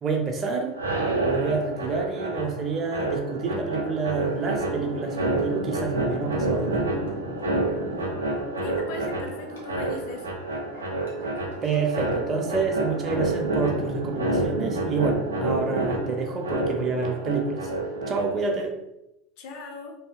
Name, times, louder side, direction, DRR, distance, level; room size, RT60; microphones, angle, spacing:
voice 1, 0.0-0.8 1.2-6.9 11.6-17.7 18.1-18.7, right 4 dB, 35° right, 2 dB, 0.6 m, -28 dB
sound 1, 0.7-18.6, right 2 dB, 85° right, 0.4 m, -28 dB
Laughter, 4.1-12.2, left 2 dB, 75° left, 1.0 m, -45 dB
voice 2, 8.6-10.3 19.4-20.0, left 3 dB, 55° left, 3 dB, 0.6 m, -38 dB
2.7 x 2.7 x 2.4 m, 0.87 s
figure-of-eight pair, 75°, 0 cm